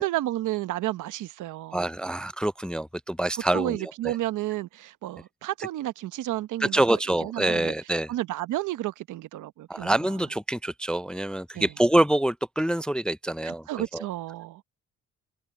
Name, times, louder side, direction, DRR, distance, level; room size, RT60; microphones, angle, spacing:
voice 1, 0.0-1.8 3.5-7.7 8.1-9.9 11.5-11.7 13.4-14.6, right 15 dB, 80° right, 0.9 m, -31 dB
voice 2, 1.7-4.2 6.6-8.1 9.7-13.7 13.9-14.0, right 1 dB, 5° left, 0.3 m, -26 dB
open air
cardioid pair, 90°, 30 cm